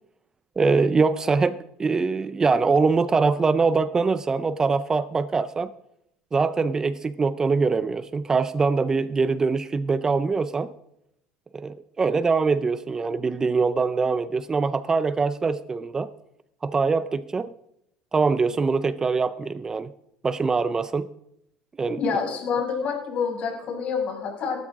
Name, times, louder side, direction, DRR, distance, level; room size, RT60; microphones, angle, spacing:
voice 1, 0.6-5.7 6.3-10.7 11.5-16.1 16.6-17.5 18.1-19.9 20.2-21.1 21.8-22.0, right 4 dB, 20° right, 16 dB, 0.5 m, -23 dB
voice 2, 22.0-24.6, left 5 dB, 50° left, 1 dB, 6.0 m, -27 dB
18.5 x 12.0 x 3.7 m, 0.79 s
supercardioid pair, 110°, 3 cm